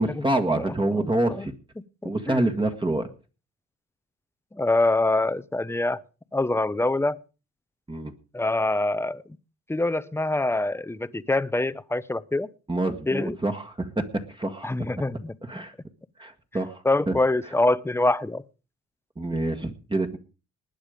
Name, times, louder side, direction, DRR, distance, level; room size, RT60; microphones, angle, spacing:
voice 1, 0.0-1.5 2.0-3.1 7.9-8.1 12.7-14.7 15.4-15.7 16.2-17.1 19.2-20.2, right 2 dB, 15° right, 1.6 m, -27 dB
voice 2, 1.8-2.6 4.5-6.0 6.3-7.2 8.3-9.2 9.7-12.5 13.1-13.4 14.6-15.4 16.8-18.4, left 2 dB, 10° left, 0.8 m, -25 dB
20.0 x 8.8 x 5.1 m
cardioid pair, 90°, 30 cm